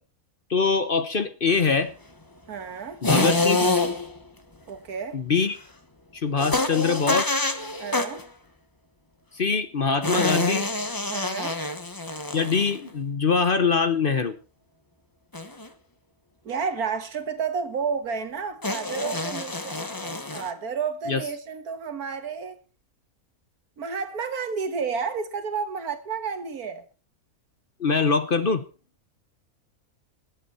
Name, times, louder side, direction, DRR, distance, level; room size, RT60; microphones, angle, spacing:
voice 1, 0.5-1.9 3.0-3.7 5.1-5.6 6.2-7.3 9.3-10.7 12.3-14.3 21.1-21.2 27.8-28.6, left 5 dB, 45° left, 0.9 m, -23 dB
voice 2, 2.5-3.0 4.7-5.2 7.8-8.2 11.1-11.6 16.4-22.6 23.8-26.8, right 6 dB, 80° right, 1.9 m, -31 dB
sound 1, 3.0-4.2 6.4-8.3 10.0-12.9 15.3-15.7 18.6-20.5, left 2 dB, 15° left, 1.0 m, -26 dB
20.5 x 8.2 x 4.3 m
omnidirectional pair, 1.5 m